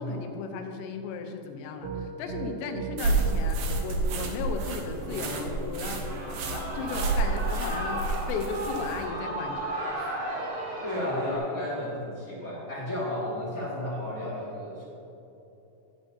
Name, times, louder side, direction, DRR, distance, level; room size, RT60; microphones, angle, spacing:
voice 1, 0.0-3.6 3.8-6.0 6.5-8.0 8.3-10.2, left 5 dB, 80° left, 4 dB, 3.0 m, -35 dB
Piano, 1.8-8.3, right 5 dB, 70° right, 2.4 m, -39 dB
sound 1, 3.0-9.0, right 3 dB, 85° right, 1.7 m, -30 dB
Shout / Cheering, 6.0-11.4, right 1 dB, 50° right, 1.6 m, -35 dB
voice 2, 10.8-14.8, left 1 dB, 35° left, -8 dB, 1.3 m, -33 dB
11.5 x 11.0 x 2.8 m, 3.0 s
omnidirectional pair, 5.1 m